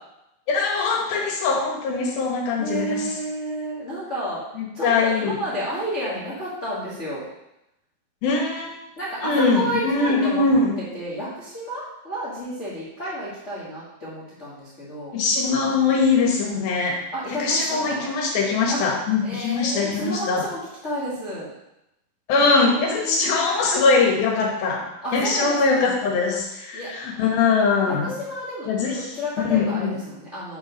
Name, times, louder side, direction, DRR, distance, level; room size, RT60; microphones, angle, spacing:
voice 1, 0.5-3.1 4.6-5.4 8.2-8.7 9.2-10.8 15.1-17.0 17.4-20.4 22.3-24.8 25.1-28.1 28.7-29.2 29.5-30.0, left 4 dB, 80° left, -1 dB, 3.2 m, -22 dB
voice 2, 2.6-4.4 4.7-7.2 9.0-10.4 10.9-15.2 17.1-18.1 18.7-18.8 19.2-21.5 22.4-22.5 22.7-23.7 25.0-26.0 26.7-26.9 27.8-28.7 29.1-30.6, equal, 35° left, -8 dB, 1.2 m, -31 dB
7.2 x 4.7 x 5.2 m, 0.87 s
omnidirectional pair, 4.2 m